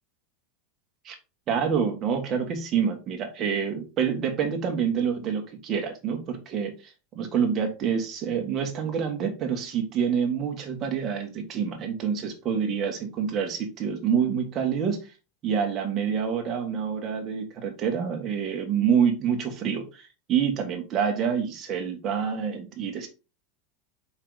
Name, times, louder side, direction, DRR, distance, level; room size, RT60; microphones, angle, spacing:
voice 1, 1.5-15.1 15.4-23.1, right 7 dB, 25° right, 3 dB, 1.6 m, -27 dB
5.7 x 4.8 x 3.9 m, 0.29 s
supercardioid pair, 165°, 0 cm